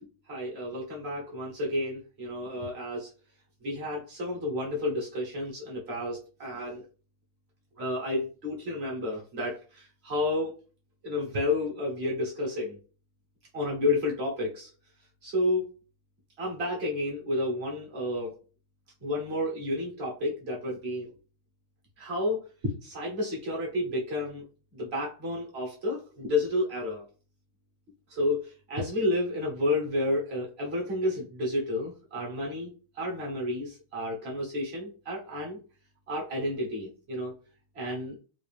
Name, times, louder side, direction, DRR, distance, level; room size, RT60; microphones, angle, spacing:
voice 1, 0.3-3.1 3.6-6.8 7.8-10.5 11.0-12.8 13.5-14.7 15.2-15.6 16.4-18.3 19.0-21.1 22.0-24.4 24.7-27.0 28.1-32.7 32.9-35.6 36.1-37.3 37.7-38.2, left 1 dB, 50° right, -2 dB, 0.7 m, -31 dB
3.9 x 2.4 x 3.3 m, 0.38 s
omnidirectional pair, 2.4 m